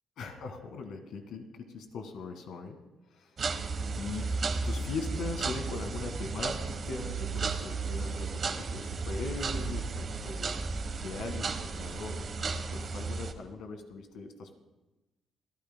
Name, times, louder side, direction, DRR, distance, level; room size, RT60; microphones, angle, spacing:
voice 1, 0.2-2.8 3.1-3.4 3.9-10.6 11.0-14.5, left 4 dB, 75° left, 5 dB, 1.8 m, -40 dB
sound 1, 3.4-13.3, right 4 dB, 45° right, 1.2 m, -34 dB
27.0 x 13.5 x 2.2 m, 1.0 s
cardioid pair, 90°, 0 cm